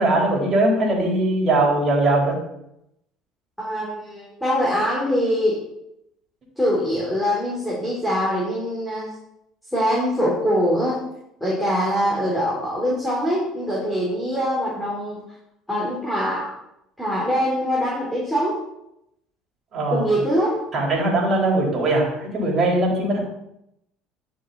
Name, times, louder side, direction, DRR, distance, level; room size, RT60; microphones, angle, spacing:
voice 1, 0.0-2.3 19.7-20.1 20.7-23.2, right 2 dB, 40° right, -2 dB, 4.2 m, -20 dB
voice 2, 3.6-5.6 6.6-9.1 9.7-11.0 11.4-15.2 15.7-16.5 17.0-18.6 19.9-20.6, equal, ahead, -6 dB, 4.1 m, -23 dB
11.0 x 6.2 x 4.3 m, 0.81 s
hypercardioid pair, 75°, 0 cm